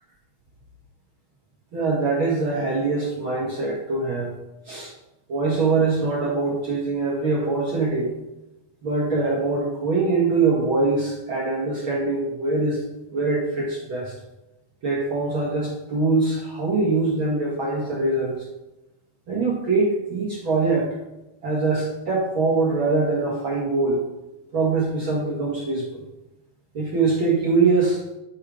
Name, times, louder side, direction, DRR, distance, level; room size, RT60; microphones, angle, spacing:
voice 1, 1.7-4.3 4.6-4.9 5.3-8.1 8.8-12.8 13.1-14.1 14.8-18.5 19.3-20.9 21.4-24.0 24.5-26.0 26.7-28.0, right 3 dB, 50° right, -4 dB, 1.7 m, -23 dB
10.5 x 5.5 x 5.1 m, 0.99 s
omnidirectional pair, 4.2 m